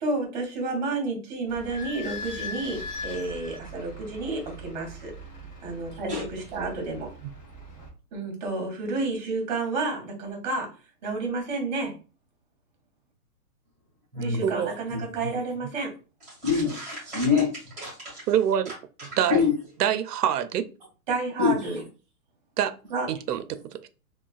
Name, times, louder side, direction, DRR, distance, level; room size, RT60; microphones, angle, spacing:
voice 1, 0.0-5.1 5.6-7.1 8.1-10.7 11.0-12.0 14.1-15.9 21.1-21.8 22.9-23.1, right 3 dB, 30° right, 1 dB, 0.9 m, -30 dB
Idling / Squeak, 1.5-7.9, left 1 dB, 30° left, 0.6 m, -40 dB
voice 2, 14.1-14.4 14.9-15.0 16.4-18.2 19.0-19.5 21.4-21.7, left 5 dB, ahead, -8 dB, 1.4 m, -26 dB
voice 3, 18.3-18.7 19.2-19.4 19.8-20.6 22.6-22.7 23.1-23.9, right 9 dB, 90° right, 11 dB, 0.5 m, -25 dB
3.0 x 2.2 x 2.3 m, 0.34 s
hypercardioid pair, 160°, 46 cm